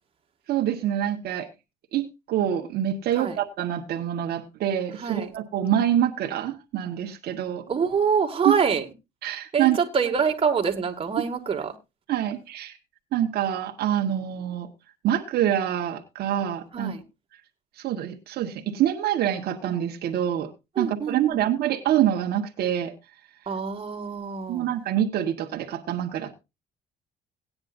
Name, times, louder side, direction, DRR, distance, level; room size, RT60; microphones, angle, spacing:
voice 1, 0.5-1.5 1.9-7.6 8.4-8.6 9.2-9.8 11.2-11.3 12.1-12.7 13.1-14.7 15.0-16.9 17.8-20.5 20.8-22.9 24.5-26.3, right 11 dB, 70° right, 1.4 m, -26 dB
voice 2, 5.0-5.4 7.7-8.8 9.5-11.7 16.7-17.0 20.8-21.4 23.5-24.7, right 6 dB, 35° right, 2.1 m, -25 dB
18.0 x 9.6 x 2.6 m
cardioid pair, 110°, 17 cm